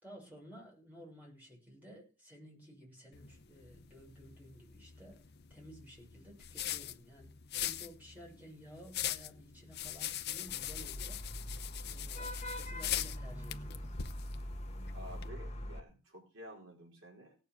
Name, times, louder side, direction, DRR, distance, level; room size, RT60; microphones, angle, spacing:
voice 1, 0.0-5.2 5.5-11.2 11.8-13.9, equal, 10° right, -2 dB, 6.5 m, -54 dB
sound 1, 3.1-15.3, left 11 dB, 50° left, 0.6 m, -42 dB
Vehicle horn car horn honking / Traffic noise roadway noise, 10.5-15.8, left 1 dB, 30° left, 1.3 m, -43 dB
voice 2, 14.9-17.4, equal, 60° right, 0 dB, 4.3 m, -51 dB
17.5 x 7.1 x 6.2 m, 0.33 s
head